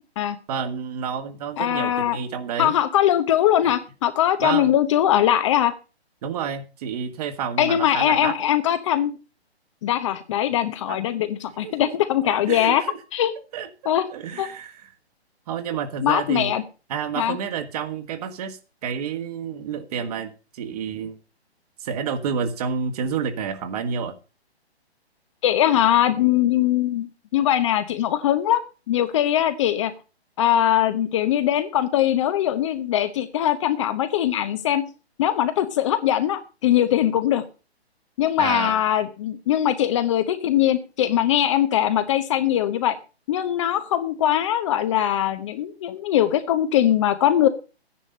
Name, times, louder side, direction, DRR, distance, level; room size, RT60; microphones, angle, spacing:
voice 1, 0.5-2.8 4.4-4.7 6.2-8.4 10.9-11.0 11.6-11.9 12.2-13.0 13.5-13.7 14.1-14.9 15.5-16.5 16.9-21.2 21.8-24.1 38.4-38.8, right 7 dB, 35° right, 9 dB, 1.7 m, -29 dB
voice 2, 1.6-2.2 2.6-5.7 7.6-9.1 9.8-12.8 13.1-13.3 13.9-14.0 14.4-14.5 16.0-16.6 17.2-17.4 25.4-27.1 27.3-28.6 28.9-29.9 30.4-34.8 35.2-37.4 38.2-43.0 43.3-47.5, left 11 dB, 30° left, 10 dB, 0.9 m, -21 dB
12.5 x 10.0 x 5.3 m, 0.33 s
figure-of-eight pair, 140°, 33 cm